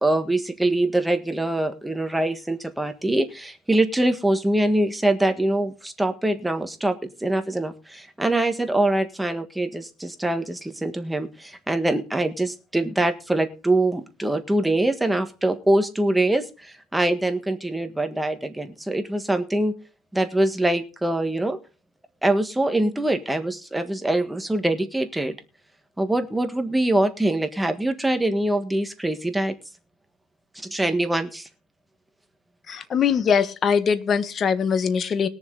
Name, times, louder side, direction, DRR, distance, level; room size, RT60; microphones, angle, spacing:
voice 1, 0.0-19.8 20.1-21.6 22.2-25.4 26.0-29.6 30.5-31.5, right 1 dB, 5° right, 7 dB, 1.5 m, -24 dB
voice 2, 32.7-35.3, left 6 dB, 35° left, 12 dB, 1.3 m, -22 dB
20.5 x 7.0 x 3.9 m, 0.34 s
cardioid pair, 115°, 0 cm